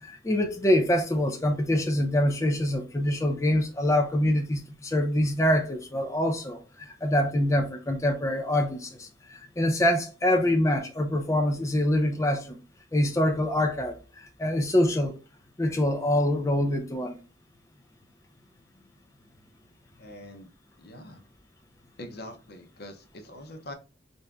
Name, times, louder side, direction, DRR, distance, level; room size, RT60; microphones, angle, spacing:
voice 1, 0.0-12.6 12.9-15.2 15.6-17.2, left 1 dB, 15° left, 0.5 m, -25 dB
voice 2, 20.0-20.5 20.8-21.2 22.0-23.7, left 1 dB, 60° left, 0.8 m, -43 dB
3.4 x 2.7 x 3.4 m
head